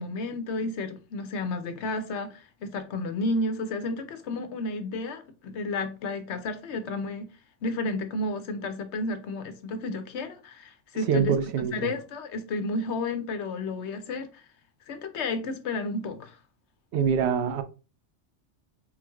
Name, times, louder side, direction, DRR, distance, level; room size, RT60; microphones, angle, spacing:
voice 1, 0.0-7.3 7.6-11.3 11.7-14.4 14.9-16.4, left 2 dB, 70° left, 1.0 m, -32 dB
voice 2, 11.1-11.9 16.9-17.6, right 7 dB, 70° right, 0.8 m, -25 dB
4.5 x 3.7 x 2.3 m
omnidirectional pair, 1.2 m